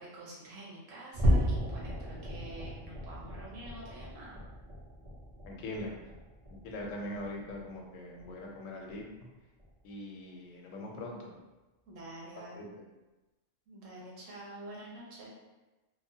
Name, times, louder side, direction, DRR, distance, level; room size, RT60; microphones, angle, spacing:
voice 1, 0.0-4.4 11.9-12.7 13.7-15.3, right 1 dB, 80° right, -5 dB, 1.2 m, -47 dB
sound 1, 1.1-7.8 8.2-8.4 8.9-9.0 9.6-9.7, equal, 35° right, 0.6 m, -34 dB
voice 2, 5.4-5.9 6.6-9.3 9.8-11.3 12.6-12.7, left 1 dB, 80° left, -1 dB, 1.0 m, -41 dB
2.9 x 2.1 x 2.6 m, 1.1 s
omnidirectional pair, 1.3 m